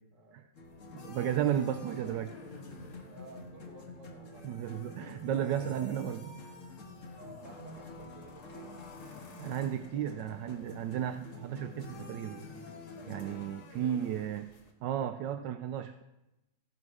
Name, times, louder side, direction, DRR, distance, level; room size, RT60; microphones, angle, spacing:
voice 1, 0.1-0.5 1.2-2.1 3.1-4.7 5.3-6.3 7.2-8.9 13.9-14.3, right 2 dB, 40° right, 2 dB, 2.1 m, -52 dB
sound 1, 0.5-13.7, left 3 dB, 40° left, 1.7 m, -49 dB
sound 2, 0.6-14.7, left 3 dB, 75° left, 2.9 m, -53 dB
voice 2, 0.9-2.3 4.4-6.2 9.4-12.4 13.1-14.5 14.8-16.0, right 10 dB, 70° right, 10 dB, 1.1 m, -34 dB
17.0 x 11.5 x 4.8 m, 0.97 s
omnidirectional pair, 2.3 m